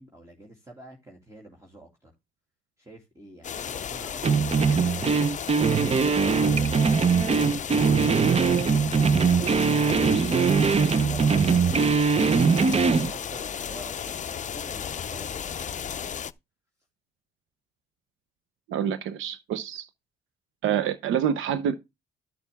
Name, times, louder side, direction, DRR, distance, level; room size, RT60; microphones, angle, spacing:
voice 1, 0.0-2.1 2.8-6.8 9.3-12.2 12.6-16.3, right 1 dB, 15° right, 2.5 m, -47 dB
sound 1, 3.4-16.3, left 8 dB, 40° left, 0.5 m, -34 dB
sound 2, 4.2-13.1, right 5 dB, 30° right, 0.6 m, -21 dB
voice 2, 18.7-19.9 20.6-21.7, right 9 dB, 80° right, 0.9 m, -27 dB
12.5 x 6.6 x 3.5 m
cardioid pair, 90°, 20 cm